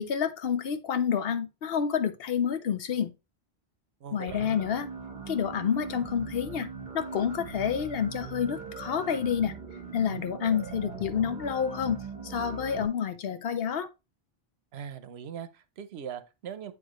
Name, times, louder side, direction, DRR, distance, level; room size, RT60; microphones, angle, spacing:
voice 1, 0.0-3.1 4.1-4.9 5.3-6.7 6.9-9.5 9.9-12.0 12.2-13.9, left 7 dB, 70° left, 0.9 m, -29 dB
voice 2, 4.0-4.5 14.7-16.7, right 8 dB, 80° right, 0.9 m, -40 dB
sound 1, 4.3-12.9, right 5 dB, 50° right, 1.2 m, -40 dB
8.2 x 4.6 x 3.0 m
omnidirectional pair, 1.1 m